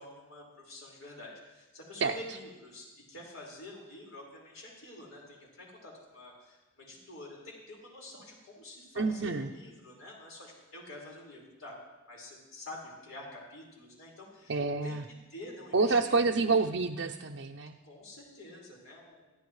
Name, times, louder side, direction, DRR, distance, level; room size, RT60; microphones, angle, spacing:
voice 1, 0.0-11.7 12.1-15.0 15.3-16.7 17.8-19.5, left 1 dB, 80° left, -3 dB, 5.0 m, -48 dB
voice 2, 9.0-9.5 14.5-15.0 15.7-17.8, right 4 dB, 60° right, 1 dB, 0.6 m, -28 dB
22.5 x 14.5 x 3.2 m, 1.1 s
head